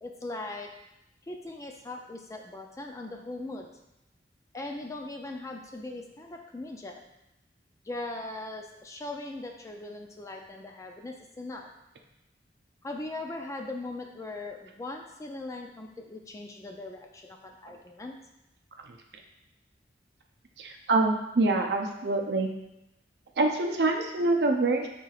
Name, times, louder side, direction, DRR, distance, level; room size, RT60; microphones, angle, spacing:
voice 1, 0.0-0.7 1.3-3.7 4.5-7.0 7.8-11.7 12.8-18.2, left 2 dB, 20° left, 2 dB, 0.4 m, -39 dB
voice 2, 20.6-22.5 23.4-24.9, right 2 dB, 65° right, 3 dB, 0.6 m, -25 dB
5.7 x 3.8 x 2.4 m, 0.90 s
head